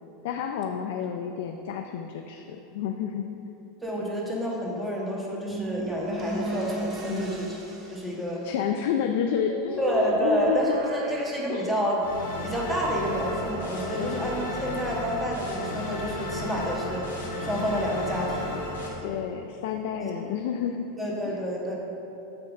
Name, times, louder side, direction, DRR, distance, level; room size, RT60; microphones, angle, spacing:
voice 1, 0.2-3.5 7.1-7.3 8.4-10.8 11.5-11.7 13.9-14.5 18.2-18.3 19.0-20.9, left 7 dB, 70° left, 4 dB, 0.4 m, -30 dB
voice 2, 3.8-7.6 7.9-8.4 9.8-12.0 12.4-17.1 17.4-18.6 20.0-20.1 21.0-21.8, equal, 5° right, -4 dB, 1.6 m, -29 dB
sound 1, 5.5-8.6 9.5-12.3, right 2 dB, 35° right, 1.4 m, -35 dB
sound 2, 12.0-18.9, left 2 dB, 90° left, 1.5 m, -34 dB
8.7 x 3.3 x 6.3 m, 2.9 s
hypercardioid pair, 110°, 0 cm